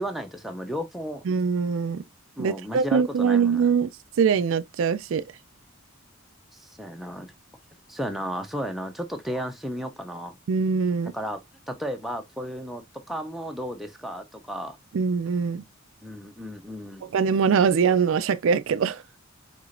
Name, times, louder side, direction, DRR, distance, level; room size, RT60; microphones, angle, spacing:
voice 1, 0.0-1.2 2.4-3.7 6.5-7.3 7.9-10.4 11.1-11.4 11.7-14.8 16.0-17.0, equal, ahead, 0.7 m, -34 dB
voice 2, 1.3-2.0 2.4-3.9 4.2-5.2 10.5-11.1 14.9-15.6 17.0-19.0, right 6 dB, 65° right, 0.4 m, -23 dB
4.9 x 3.8 x 2.5 m
head